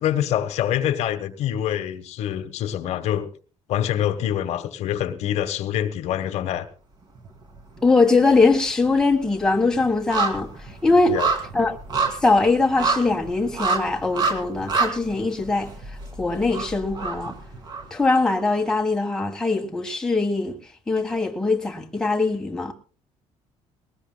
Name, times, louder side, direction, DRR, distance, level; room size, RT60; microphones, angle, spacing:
voice 1, 0.0-3.3 3.7-6.7 11.1-11.3, left 11 dB, 65° left, 1.2 m, -25 dB
sound 1, 7.2-7.9 8.2-18.2 18.5-18.6, right 4 dB, 35° right, 2.7 m, -28 dB
voice 2, 7.8-10.5 10.8-11.2 11.5-11.8 12.2-15.7 16.2-17.3 17.9-20.5 20.9-22.7, left 3 dB, 5° left, 1.4 m, -21 dB
21.0 x 18.5 x 2.2 m
cardioid pair, 170°, 12 cm